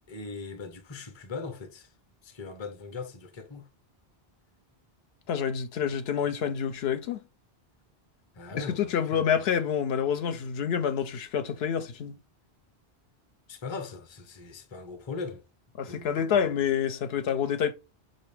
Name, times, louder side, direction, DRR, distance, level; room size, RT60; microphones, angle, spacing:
voice 1, 0.1-1.9 2.2-3.7 8.3-9.4 13.5-15.5 15.8-16.6, left 4 dB, 35° left, 0.6 m, -40 dB
voice 2, 5.3-7.2 8.5-12.2 15.8-17.7, left 8 dB, 85° left, 0.8 m, -28 dB
5.3 x 2.6 x 3.3 m
omnidirectional pair, 1.0 m